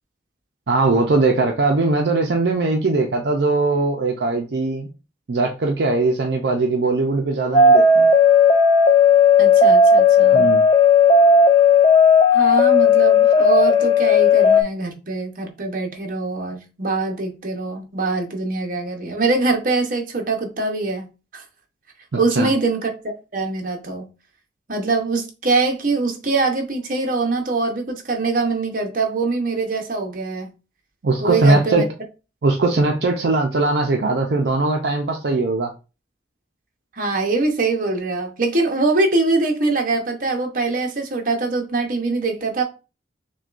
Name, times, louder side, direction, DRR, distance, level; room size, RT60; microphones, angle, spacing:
voice 1, 0.7-4.9 5.3-8.1 10.3-10.6 22.1-22.5 31.0-31.8 32.4-35.7, right 3 dB, 65° right, 0.5 m, -20 dB
sound 1, 7.5-14.6, left 4 dB, 25° left, 0.4 m, -13 dB
voice 2, 9.4-10.5 12.3-21.1 21.3-21.4 22.1-22.9 23.3-24.1 24.7-30.5 31.2-31.8 36.9-42.6, right 3 dB, 50° right, 0.9 m, -23 dB
6.2 x 2.3 x 2.5 m
head